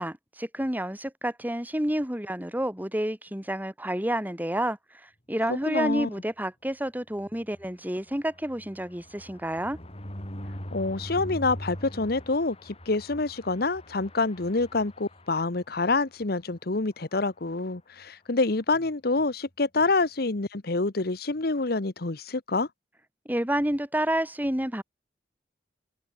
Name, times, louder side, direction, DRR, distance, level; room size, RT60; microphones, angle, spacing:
voice 1, 0.0-4.8 5.0-9.8 23.3-24.8, right 1 dB, 10° right, 3.8 m, -29 dB
voice 2, 5.5-6.1 10.7-22.7, left 3 dB, 60° left, 1.2 m, -27 dB
sound 1, 7.2-16.0 16.4-16.6 16.8-16.9 17.2-17.5, equal, 35° left, 7.0 m, -42 dB
head